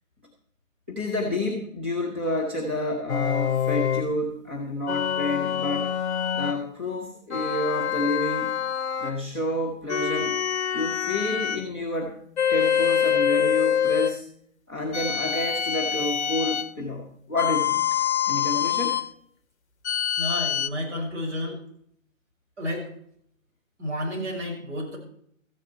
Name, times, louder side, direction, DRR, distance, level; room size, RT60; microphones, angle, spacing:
voice 1, 0.9-5.9 6.3-8.5 9.0-10.4 10.7-12.2 12.5-14.2 14.7-18.0 18.3-19.0, left 1 dB, 10° right, -4 dB, 0.6 m, -29 dB
sound 1, 3.1-4.1 4.9-6.6 7.3-9.2 9.9-11.6 12.4-14.2 14.9-16.7 17.4-19.1 19.8-20.7, left 8 dB, 55° left, 0.8 m, -25 dB
voice 2, 20.2-21.6 22.6-22.9 23.8-25.0, equal, 55° right, 0 dB, 6.2 m, -31 dB
14.0 x 10.5 x 4.5 m, 0.66 s
hypercardioid pair, 165°, 40 cm